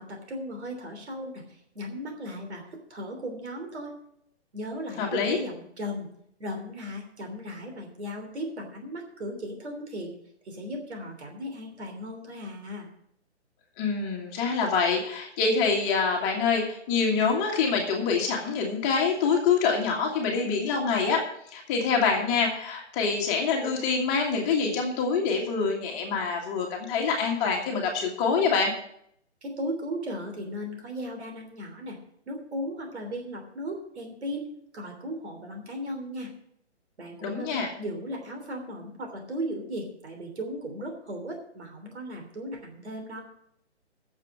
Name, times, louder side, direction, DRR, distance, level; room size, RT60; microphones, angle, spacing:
voice 1, 0.0-3.9 4.5-6.1 6.4-10.2 10.4-12.9 29.4-32.0 32.3-34.5 34.7-36.3 37.0-43.2, equal, 70° right, 3 dB, 3.3 m, -36 dB
voice 2, 5.0-5.4 13.8-21.2 21.5-28.7 37.2-37.7, left 5 dB, 20° left, 1 dB, 1.7 m, -25 dB
9.3 x 7.0 x 8.7 m, 0.69 s
hypercardioid pair, 150°, 35 cm